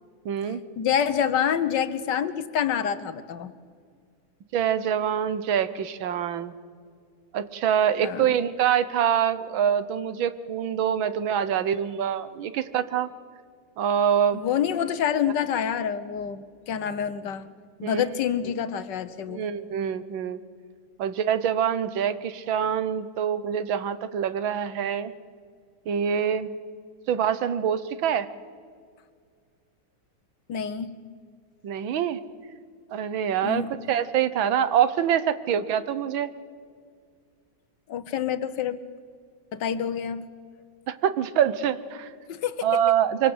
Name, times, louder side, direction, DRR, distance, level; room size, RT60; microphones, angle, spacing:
voice 1, 0.3-0.6 4.5-6.5 7.3-13.1 13.8-14.4 17.8-17.9 19.3-20.4 21.0-25.1 25.9-26.5 27.1-28.3 31.6-32.2 32.9-36.3 40.9-42.1 42.6-43.3, right 9 dB, 85° right, 13 dB, 1.8 m, -25 dB
voice 2, 0.8-3.5 8.0-8.3 14.3-17.5 17.8-19.4 30.5-31.0 33.4-33.7 37.9-38.8 39.5-40.2 42.3-42.7, left 8 dB, 65° left, 12 dB, 1.6 m, -27 dB
25.0 x 24.5 x 8.0 m, 2.1 s
omnidirectional pair, 2.1 m